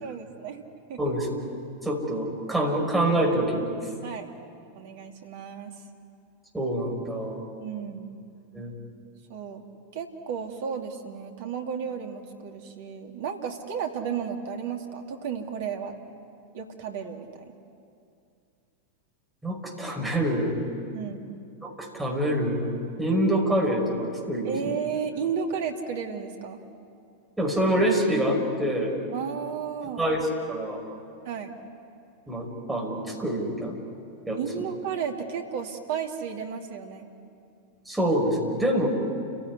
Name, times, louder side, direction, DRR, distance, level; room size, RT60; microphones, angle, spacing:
voice 1, 0.0-0.6 0.9-1.1 4.0-4.3 4.8-5.7 7.6-8.1 9.3-9.6 9.9-15.9 16.5-17.4 20.9-21.3 24.4-26.6 29.1-30.1 31.2-31.6 34.4-37.0, right 7 dB, 50° right, 3 dB, 2.6 m, -33 dB
voice 2, 1.8-3.7 6.5-7.4 8.5-8.7 19.4-20.6 21.6-22.7 23.0-24.7 27.4-28.9 30.0-30.8 32.3-33.8 34.3-34.7 37.9-38.9, right 1 dB, 5° right, -1 dB, 5.7 m, -26 dB
29.5 x 16.5 x 9.8 m, 2.5 s
figure-of-eight pair, 90°, 0 cm